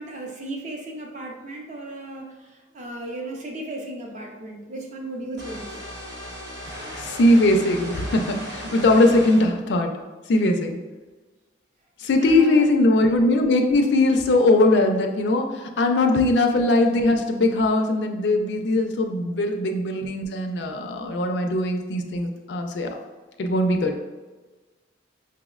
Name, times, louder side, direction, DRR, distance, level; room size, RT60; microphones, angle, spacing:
voice 1, 0.0-5.8 12.2-12.6, right 2 dB, 40° right, 0 dB, 0.5 m, -35 dB
sound 1, 5.4-9.5, equal, 65° right, 0.9 m, -36 dB
voice 2, 6.9-9.9 10.3-10.8 12.0-22.9 23.4-24.0, left 2 dB, 65° left, 4 dB, 0.4 m, -20 dB
5.4 x 2.0 x 2.3 m, 1.3 s
head